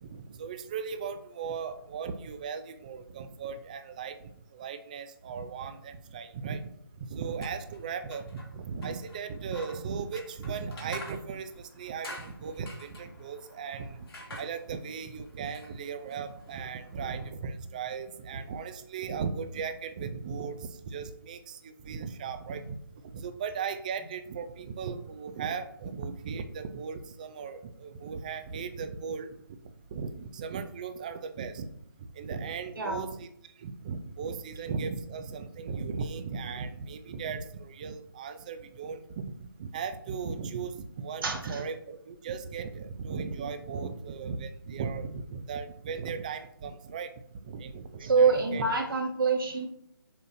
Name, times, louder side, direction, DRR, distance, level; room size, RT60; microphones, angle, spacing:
voice 1, 0.0-6.6 7.0-22.8 23.1-29.3 29.9-31.7 32.2-33.3 33.6-39.3 39.6-47.1 47.4-48.6, right 5 dB, 20° right, 10 dB, 0.4 m, -37 dB
sound 1, 7.2-17.3, left 2 dB, 80° left, 1.9 m, -49 dB
voice 2, 32.8-33.1 41.2-41.6 48.0-49.7, right 4 dB, 65° right, 1 dB, 2.0 m, -26 dB
6.9 x 6.6 x 2.6 m, 0.70 s
figure-of-eight pair, 160°, 12 cm